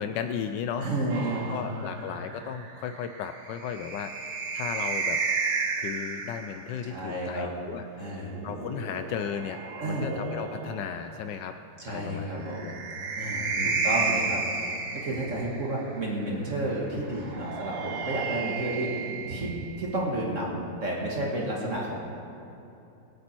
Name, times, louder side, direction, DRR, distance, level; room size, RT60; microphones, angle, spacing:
voice 1, 0.0-0.9 1.5-4.1 4.5-5.2 5.8-9.6 9.9-11.5 11.9-12.7 13.5-14.1, left 8 dB, 80° left, 8 dB, 1.2 m, -35 dB
voice 2, 0.8-1.7 6.8-7.5 8.0-8.4 9.8-10.1 11.8-12.8 13.2-22.0, right 1 dB, 45° right, -3 dB, 2.1 m, -31 dB
sound 1, 1.1-6.6 8.0-11.0 12.4-15.8 17.1-20.0, right 4 dB, 65° right, 1.8 m, -33 dB
23.0 x 8.4 x 4.5 m, 2.9 s
omnidirectional pair, 1.9 m